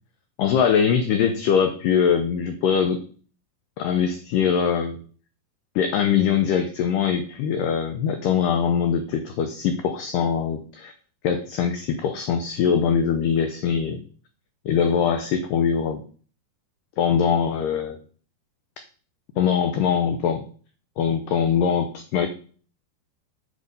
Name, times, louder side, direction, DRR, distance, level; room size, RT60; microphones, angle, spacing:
voice 1, 0.4-3.0 3.8-5.0 5.8-10.9 11.2-14.0 14.7-16.0 17.0-18.0 19.4-20.4 21.0-22.3, left 7 dB, 85° left, 8 dB, 1.9 m, -22 dB
7.9 x 5.3 x 5.4 m, 0.43 s
omnidirectional pair, 4.7 m